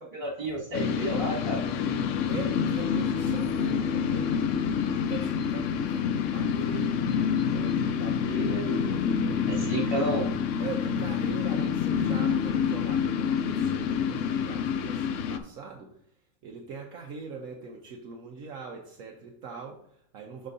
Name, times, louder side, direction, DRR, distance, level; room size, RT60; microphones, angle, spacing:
voice 1, 0.1-1.6 8.0-8.6 9.5-10.3, right 1 dB, 35° right, -4 dB, 2.3 m, -32 dB
sound 1, 0.7-15.4, left 7 dB, 65° left, 0.9 m, -27 dB
voice 2, 2.3-4.4 4.9-6.9 7.5-9.9 10.6-16.0 16.4-20.5, right 5 dB, 70° right, 1 dB, 1.2 m, -41 dB
12.0 x 4.5 x 2.7 m, 0.69 s
omnidirectional pair, 1.5 m